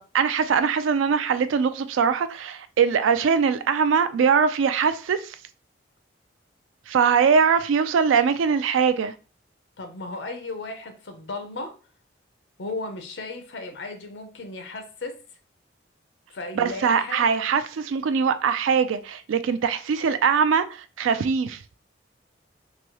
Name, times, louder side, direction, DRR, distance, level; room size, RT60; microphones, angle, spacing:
voice 1, 0.1-5.3 6.9-9.1 16.6-21.6, right 6 dB, 90° right, 0.3 m, -22 dB
voice 2, 9.8-11.7 12.6-15.2 16.3-17.4, left 2 dB, 70° left, 0.6 m, -35 dB
3.0 x 2.2 x 2.9 m
head